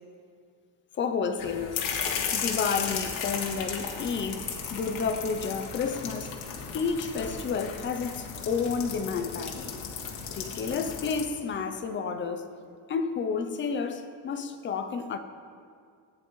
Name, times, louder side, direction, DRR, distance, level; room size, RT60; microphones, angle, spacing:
voice 1, 0.9-1.9 2.3-6.4 6.7-9.7 10.3-12.5 12.9-15.2, left 5 dB, 30° left, 0.3 m, -31 dB
sound 1, 1.4-11.2, left 6 dB, 90° left, 1.5 m, -35 dB
14.5 x 9.6 x 3.0 m
cardioid pair, 170°, 46 cm